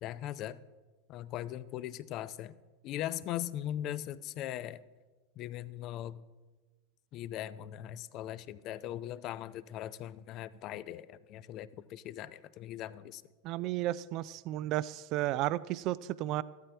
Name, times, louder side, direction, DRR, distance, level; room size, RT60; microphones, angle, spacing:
voice 1, 0.0-0.6 1.1-2.6 2.8-4.8 5.4-6.2 7.1-13.2, left 12 dB, 45° left, 16 dB, 0.5 m, -40 dB
voice 2, 13.4-16.4, right 15 dB, 50° right, 18 dB, 0.4 m, -33 dB
14.0 x 13.0 x 3.4 m, 1.3 s
hypercardioid pair, 100°, 0 cm